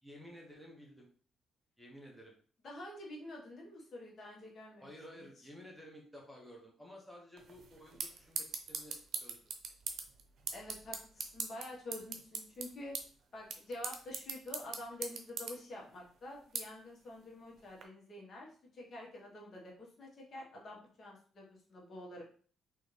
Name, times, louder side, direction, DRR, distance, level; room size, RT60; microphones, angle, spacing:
voice 1, 0.0-1.1 1.8-2.3 4.8-9.4, equal, ahead, -2 dB, 1.1 m, -53 dB
voice 2, 2.6-4.9 10.5-12.9 13.3-22.2, left 1 dB, 50° left, -2 dB, 1.5 m, -48 dB
sound 1, 7.4-17.8, right 5 dB, 65° right, 0.7 m, -44 dB
3.9 x 3.1 x 3.4 m, 0.43 s
cardioid pair, 90°, 0 cm